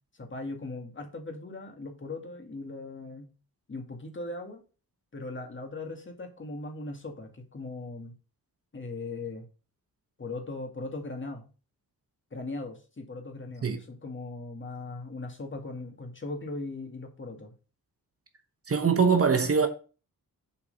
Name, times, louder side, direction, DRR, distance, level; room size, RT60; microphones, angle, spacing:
voice 1, 0.2-3.3 3.7-4.6 5.1-8.1 8.7-9.4 10.2-11.4 12.3-17.5, left 2 dB, 30° left, 2.2 m, -39 dB
voice 2, 18.7-19.7, right 5 dB, 40° right, 1.1 m, -22 dB
7.3 x 4.7 x 6.6 m
wide cardioid pair, 120°, 36 cm